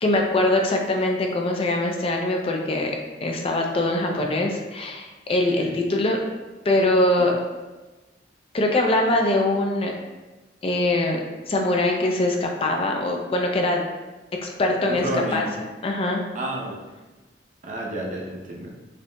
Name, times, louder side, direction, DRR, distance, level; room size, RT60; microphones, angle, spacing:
voice 1, 0.0-2.9 3.2-6.2 6.6-7.3 8.5-9.9 10.6-11.2 11.5-13.8 14.4-15.1 15.3-15.4 15.8-16.2, left 2 dB, 35° left, 1 dB, 0.4 m, -22 dB
voice 2, 14.8-15.5 16.3-16.8 17.6-18.7, right 1 dB, 45° right, -2 dB, 0.7 m, -30 dB
5.0 x 2.8 x 2.2 m, 1.2 s
head